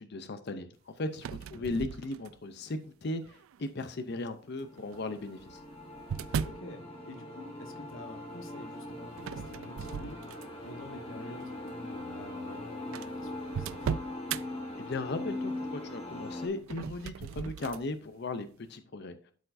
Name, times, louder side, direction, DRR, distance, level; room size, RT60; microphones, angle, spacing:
voice 1, 0.0-5.6 14.8-19.3, left 2 dB, 50° left, 9 dB, 0.5 m, -37 dB
sound 1, 1.1-2.6 3.2-3.7 4.8-6.7 9.2-10.7 11.2-11.4 12.2-12.3 12.5-12.6 12.9-14.4 16.6-17.9, right 7 dB, 75° right, 0.3 m, -37 dB
sound 2, 4.6-16.5, left 1 dB, 30° left, 1.6 m, -41 dB
voice 2, 6.4-10.2 10.6-14.0, left 2 dB, 70° left, 5 dB, 1.2 m, -48 dB
12.5 x 4.5 x 2.6 m, 0.42 s
head